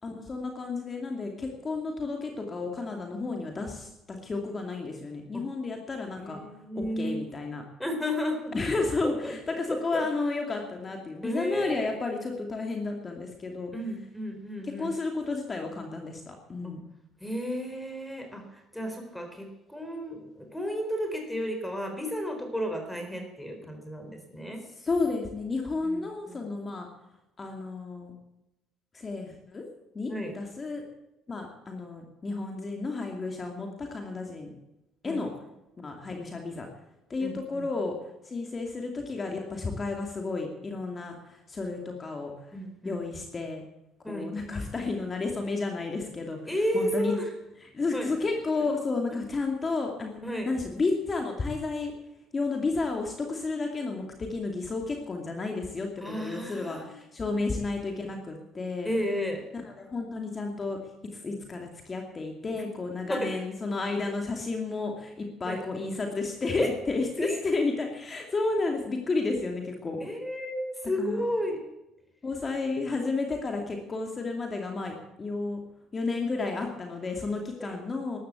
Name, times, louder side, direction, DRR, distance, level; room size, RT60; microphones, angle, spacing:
voice 1, 0.0-6.4 6.7-7.6 8.5-13.7 14.6-16.8 24.8-26.9 27.4-28.1 28.9-29.7 29.9-30.8 31.3-34.5 35.0-35.3 35.8-36.7 37.1-37.9 38.2-42.5 42.8-43.6 44.1-47.1 47.7-50.2 50.5-51.9 52.3-58.9 59.6-60.8 61.1-70.0 71.0-71.2 72.2-75.6 75.9-78.2, left 3 dB, 30° left, 2 dB, 2.7 m, -32 dB
voice 2, 6.2-7.2 7.8-8.5 9.0-10.0 11.2-11.9 13.7-14.9 16.6-16.7 17.2-24.6 25.8-26.4 30.1-30.3 35.0-35.2 37.2-37.7 42.5-43.0 44.0-44.3 46.5-47.3 47.9-48.1 50.2-50.5 56.0-56.9 58.8-59.4 62.5-62.6 63.1-63.3 65.5-65.6 66.5-66.7 67.2-67.4 70.0-71.6 77.6-77.8, equal, 5° left, 4 dB, 3.9 m, -33 dB
14.0 x 11.5 x 8.3 m, 0.94 s
supercardioid pair, 80°, 0 cm